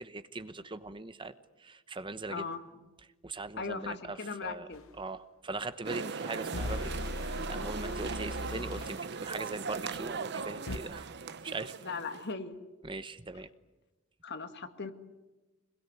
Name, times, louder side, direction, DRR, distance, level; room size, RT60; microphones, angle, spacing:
voice 1, 0.0-2.4 3.0-4.7 4.9-11.1 11.4-11.8 12.8-13.5, right 3 dB, 25° right, 12 dB, 1.0 m, -40 dB
voice 2, 2.3-2.6 3.6-4.8 11.8-12.6 14.2-14.9, left 4 dB, 55° left, 8 dB, 2.0 m, -38 dB
sound 1, 4.7-4.8 6.5-9.0 10.7-10.8, left 2 dB, 85° left, 1.2 m, -38 dB
sound 2, 5.8-12.3, right 5 dB, 55° right, 0.9 m, -39 dB
26.5 x 21.5 x 9.7 m, 1.1 s
head